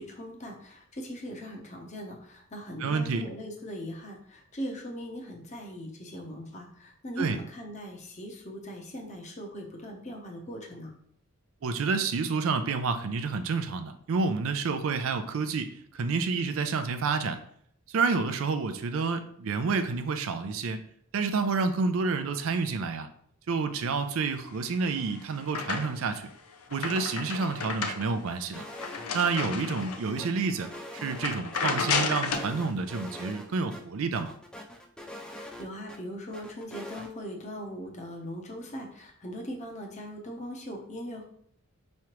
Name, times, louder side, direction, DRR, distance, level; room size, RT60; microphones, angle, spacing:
voice 1, 0.0-10.9 35.4-41.2, equal, 35° left, 1 dB, 0.7 m, -40 dB
voice 2, 2.8-3.2 7.2-7.4 11.6-17.4 17.9-20.8 21.1-23.1 23.5-26.3 26.7-28.6 29.1-34.3, right 4 dB, 65° right, 9 dB, 0.4 m, -29 dB
sound 1, 24.6-26.2 26.5-30.2 30.6-30.8 31.1-32.5, left 5 dB, 85° left, 0.5 m, -32 dB
sound 2, 28.5-29.1 29.3-29.5 29.8-31.6 32.0-33.5 33.7-33.8 34.1-36.0 36.3-37.1, left 1 dB, 5° left, 0.3 m, -43 dB
4.7 x 3.2 x 2.9 m, 0.64 s
head